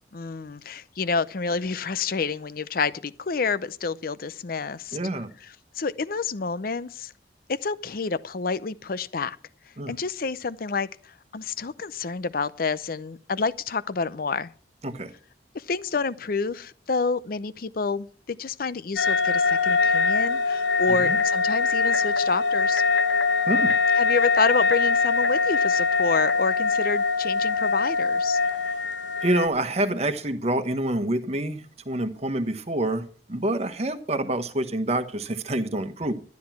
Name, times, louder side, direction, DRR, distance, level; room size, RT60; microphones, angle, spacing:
voice 1, 0.1-5.0 5.7-7.1 7.5-9.4 9.9-10.9 11.3-14.5 15.5-22.8 24.0-28.4, left 4 dB, 55° left, 0.6 m, -28 dB
voice 2, 4.9-5.3 9.8-9.9 14.8-15.1 21.0-21.2 23.5-23.7 29.2-36.1, right 1 dB, 35° right, 1.2 m, -27 dB
sound 1, 19.0-29.5, left 4 dB, 85° left, 0.9 m, -23 dB
12.5 x 10.5 x 5.9 m
head